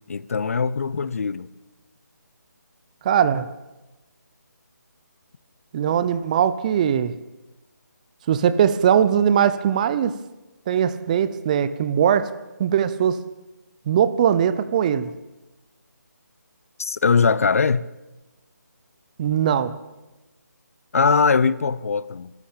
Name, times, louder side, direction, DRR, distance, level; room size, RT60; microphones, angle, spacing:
voice 1, 0.1-1.5 16.8-17.8 20.9-22.3, left 5 dB, 50° left, 0.8 m, -21 dB
voice 2, 3.0-3.5 5.7-7.1 8.3-10.2 10.7-12.3 12.6-13.2 13.9-15.1 19.2-19.7, right 8 dB, 25° right, 0.9 m, -20 dB
24.5 x 13.5 x 8.6 m
figure-of-eight pair, 155°, 10 cm